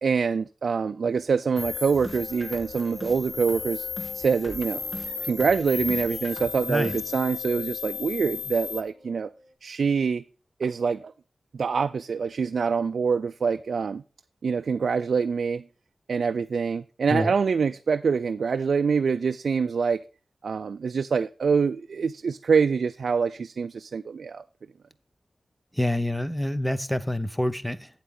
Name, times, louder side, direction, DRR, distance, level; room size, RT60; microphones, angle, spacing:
voice 1, 0.0-3.9 4.1-4.8 5.2-9.3 9.6-10.2 10.6-11.1 11.5-14.0 14.4-15.6 16.1-20.0 20.4-24.4, right 5 dB, 80° right, 0.3 m, -25 dB
sound 1, 1.5-9.5, left 1 dB, 45° left, 2.4 m, -42 dB
sound 2, 1.6-8.8, left 6 dB, 85° left, 0.6 m, -35 dB
voice 2, 25.7-27.9, left 1 dB, 5° left, 0.6 m, -27 dB
8.6 x 8.1 x 3.7 m
wide cardioid pair, 120°, 0 cm